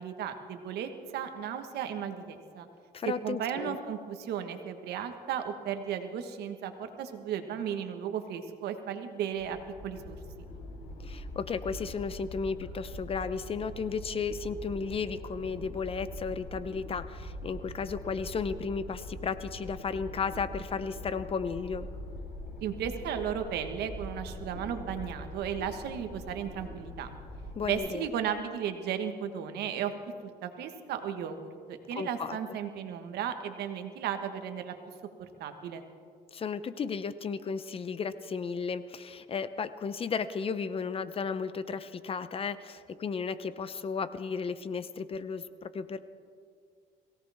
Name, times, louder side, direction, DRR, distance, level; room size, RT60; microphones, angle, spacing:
voice 1, 0.0-2.7 3.2-9.6 9.8-10.2 22.6-27.1 27.7-29.9 30.4-34.7 35.4-35.8, right 8 dB, 75° right, 7 dB, 1.4 m, -35 dB
voice 2, 2.9-3.8 11.0-21.9 27.5-28.1 31.9-32.4 36.3-46.0, left 5 dB, 35° left, 13 dB, 0.7 m, -34 dB
sound 1, 9.3-27.7, left 1 dB, 75° left, 4.2 m, -43 dB
22.5 x 17.0 x 3.5 m, 2.2 s
cardioid pair, 110°, 17 cm